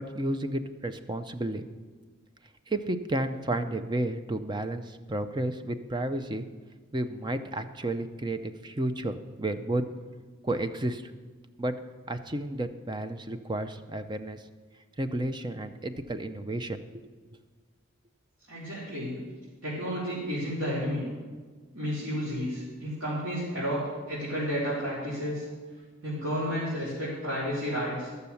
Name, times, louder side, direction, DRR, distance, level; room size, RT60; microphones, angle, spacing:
voice 1, 0.0-1.6 2.7-6.5 6.9-9.8 10.4-11.1 11.6-11.7 12.1-14.4 15.0-17.1, right 1 dB, 20° right, 9 dB, 0.5 m, -32 dB
voice 2, 18.5-19.2 19.6-21.0 21.7-23.8 24.1-25.4 26.0-28.1, equal, 85° right, -10 dB, 4.0 m, -31 dB
13.5 x 6.7 x 7.0 m, 1.4 s
head